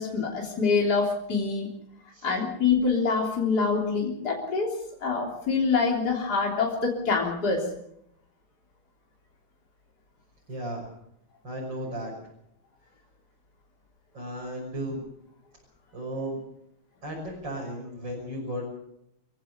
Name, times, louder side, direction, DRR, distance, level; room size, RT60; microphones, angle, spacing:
voice 1, 0.0-1.7 2.2-4.7 5.0-7.7, left 4 dB, 45° left, 0 dB, 4.0 m, -25 dB
voice 2, 10.5-10.8 11.4-12.1 14.1-15.0 15.9-16.4 17.0-18.7, right 1 dB, 55° right, -3 dB, 7.0 m, -34 dB
27.0 x 16.0 x 6.8 m, 0.77 s
omnidirectional pair, 2.4 m